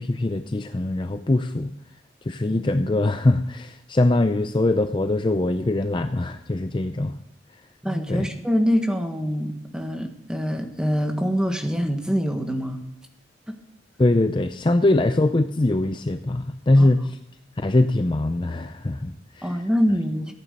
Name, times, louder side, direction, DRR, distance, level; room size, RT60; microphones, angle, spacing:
voice 1, 0.0-1.7 2.3-7.1 8.1-8.3 14.0-17.2 17.6-19.6, left 2 dB, 25° left, 9 dB, 0.5 m, -22 dB
voice 2, 7.8-12.8 16.8-16.9 19.4-20.3, equal, 5° right, 4 dB, 1.4 m, -24 dB
15.0 x 9.0 x 6.7 m, 0.73 s
head